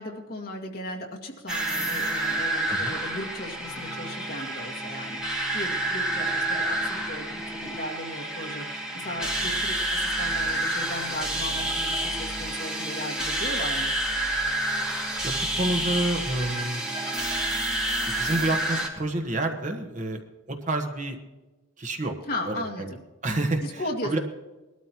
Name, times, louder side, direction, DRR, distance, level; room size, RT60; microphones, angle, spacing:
voice 1, 0.0-13.9 22.3-23.0 23.6-24.1, left 1 dB, 45° left, -1 dB, 2.1 m, -36 dB
sound 1, 1.5-18.9, right 1 dB, 5° right, 2.2 m, -29 dB
voice 2, 15.2-16.8 18.1-20.2 20.5-21.2 21.8-22.1 22.4-22.9 23.2-24.2, right 2 dB, 35° right, 4 dB, 1.3 m, -29 dB
20.5 x 12.5 x 3.0 m, 1.1 s
head